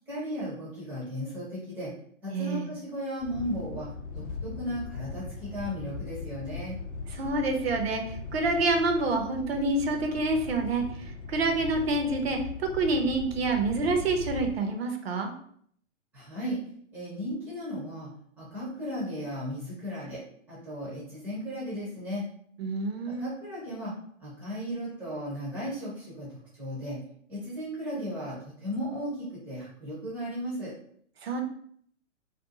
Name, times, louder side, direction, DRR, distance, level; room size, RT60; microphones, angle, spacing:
voice 1, 0.1-1.9 2.2-3.9 4.1-6.7 16.1-16.6 16.9-18.1 18.4-20.2 20.5-22.2 23.1-23.9 24.2-27.0 27.3-30.7, equal, 5° right, -9 dB, 0.5 m, -35 dB
voice 2, 2.3-2.7 7.1-8.0 8.3-10.8 11.3-15.3 22.6-23.2 31.2-31.4, right 2 dB, 50° right, 4 dB, 0.6 m, -27 dB
sound 1, 3.2-14.5, left 4 dB, 60° left, 0.5 m, -39 dB
2.5 x 2.3 x 2.7 m, 0.62 s
figure-of-eight pair, 130°, 39 cm